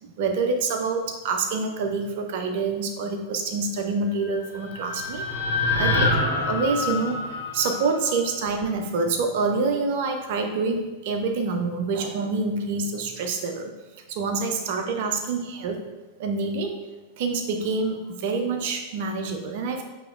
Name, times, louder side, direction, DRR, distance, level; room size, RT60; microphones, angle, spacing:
voice 1, 0.0-5.2 5.7-6.1 6.4-13.7 14.1-15.8 16.2-16.7 17.2-19.8, right 4 dB, 50° right, 5 dB, 0.6 m, -26 dB
sound 1, 4.2-8.4, left 2 dB, 85° left, 1.0 m, -26 dB
7.6 x 2.9 x 2.4 m, 1.1 s
figure-of-eight pair, 90°, 0 cm